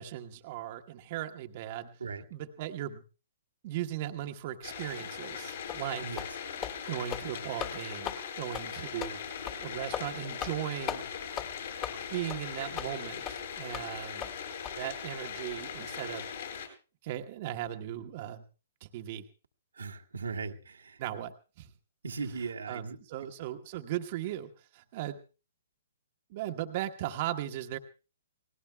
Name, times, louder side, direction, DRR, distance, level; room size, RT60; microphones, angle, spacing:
voice 1, 0.0-1.9 2.3-3.0 3.6-6.0 6.9-9.2 9.6-11.0 12.1-14.3 14.8-16.2 17.0-18.4 18.8-19.2 21.0-21.7 22.7-25.2 26.3-27.8, right 12 dB, 45° right, 5 dB, 1.2 m, -37 dB
sound 1, 4.6-16.7, left 7 dB, 65° left, 7.4 m, -40 dB
sound 2, 5.7-5.8 6.2-6.3 6.6-6.8 7.0-7.3 7.6-7.7 8.0-8.2 8.5-8.7 9.0-9.1 9.4-9.6 9.9-10.1 10.4-10.6 10.9-11.0 11.4-11.5 11.8-12.0 12.3-12.4 12.8-12.9 13.2-13.4 13.7-13.9 14.2-14.3 14.6-14.7, left 9 dB, 30° left, 2.0 m, -37 dB
voice 2, 19.7-21.0 22.0-23.3, right 4 dB, 75° right, 3 dB, 1.6 m, -38 dB
30.0 x 19.5 x 2.3 m, 0.36 s
figure-of-eight pair, 125°, 0 cm